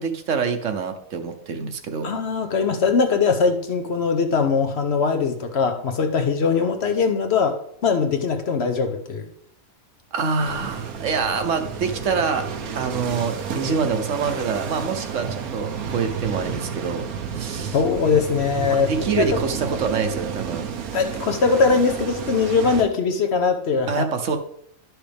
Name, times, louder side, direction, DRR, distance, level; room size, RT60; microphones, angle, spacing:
voice 1, 0.0-2.1 10.1-12.5 12.7-17.1 17.3-17.8 18.7-20.7 23.9-24.4, right 5 dB, 65° right, 6 dB, 1.1 m, -26 dB
voice 2, 2.0-9.2 17.7-19.3 20.9-24.1, left 5 dB, 55° left, 6 dB, 0.9 m, -21 dB
sound 1, 10.4-22.8, right 6 dB, 90° right, 1.3 m, -31 dB
11.0 x 6.2 x 3.4 m, 0.69 s
omnidirectional pair, 1.5 m